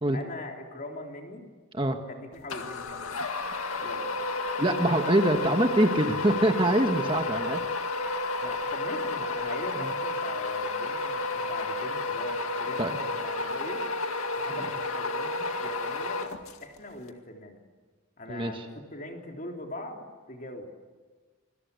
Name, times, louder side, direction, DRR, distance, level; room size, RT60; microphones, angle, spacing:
voice 1, 0.1-1.4 2.1-3.1 3.8-4.1 7.2-7.4 8.4-13.8 14.4-16.3 16.6-17.6 18.2-20.7, left 1 dB, 40° left, 2 dB, 3.4 m, -41 dB
sound 1, 2.5-16.8, left 3 dB, 80° left, 2.1 m, -31 dB
voice 2, 4.6-7.6 9.8-9.9 12.8-12.9 14.5-14.6 18.3-18.6, right 1 dB, 25° right, 5 dB, 1.5 m, -24 dB
27.5 x 22.0 x 8.3 m, 1.4 s
head